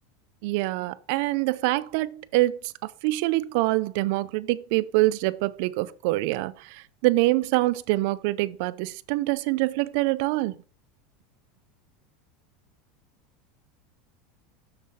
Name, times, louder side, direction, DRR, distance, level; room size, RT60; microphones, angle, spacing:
voice 1, 0.4-10.6, right 19 dB, 60° right, 0.5 m, -25 dB
6.7 x 6.5 x 3.6 m
supercardioid pair, 150°, 0 cm